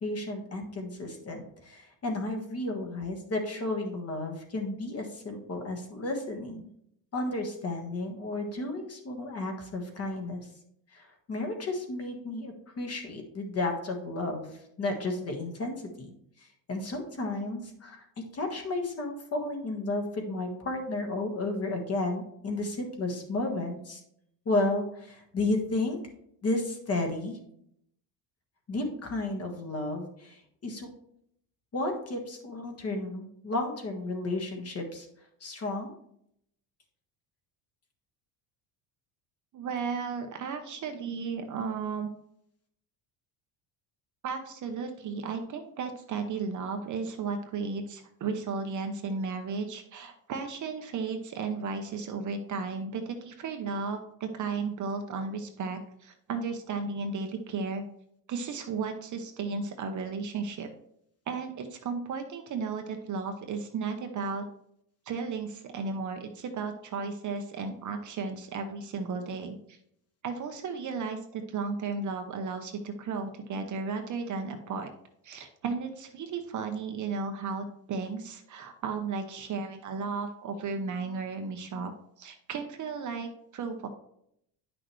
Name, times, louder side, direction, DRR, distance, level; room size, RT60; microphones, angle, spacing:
voice 1, 0.0-6.6 7.1-10.5 10.9-14.5 14.8-16.1 16.4-18.0 18.3-24.0 24.4-26.0 26.4-27.4 28.7-30.9 31.7-35.1 35.4-35.9, left 2 dB, 30° left, 3 dB, 1.6 m, -33 dB
voice 2, 39.5-42.1 44.2-57.8 58.3-60.7 61.3-64.4 65.1-69.8 70.2-74.9 75.2-81.9 82.2-83.9, right 4 dB, 40° right, 5 dB, 0.9 m, -34 dB
9.7 x 6.1 x 3.2 m, 0.73 s
cardioid pair, 135°, 47 cm